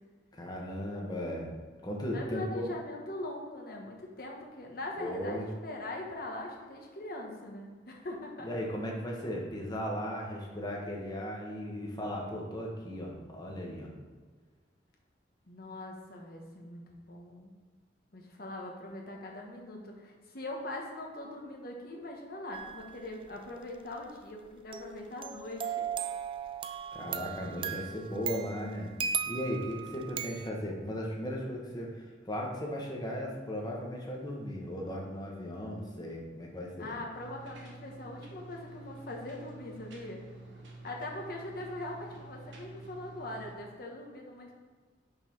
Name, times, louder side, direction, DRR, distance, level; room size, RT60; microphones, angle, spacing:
voice 1, 0.4-1.5 1.8-2.7 5.0-5.4 8.4-13.9 26.9-28.9 29.3-36.9, equal, 25° left, -2 dB, 1.2 m, -36 dB
voice 2, 2.1-8.5 15.5-17.5 18.1-25.9 36.8-40.2 40.8-44.5, left 2 dB, 55° left, 0 dB, 1.2 m, -41 dB
sound 1, 22.5-23.0 24.7-30.5, right 7 dB, 30° right, 0.3 m, -37 dB
sound 2, 37.1-43.5, right 2 dB, 90° right, 1.3 m, -49 dB
5.5 x 4.5 x 5.4 m, 1.5 s
head